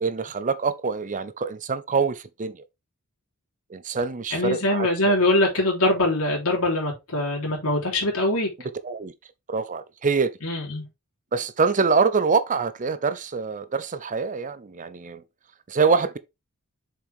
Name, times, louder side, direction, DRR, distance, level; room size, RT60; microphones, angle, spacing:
voice 1, 0.0-2.6 3.7-5.1 8.8-9.1 9.5-10.3 11.3-15.2 15.7-16.2, right 5 dB, 35° right, 0.6 m, -25 dB
voice 2, 4.3-8.5 10.4-10.8, left 1 dB, 80° left, 3.6 m, -23 dB
7.1 x 5.0 x 3.5 m
head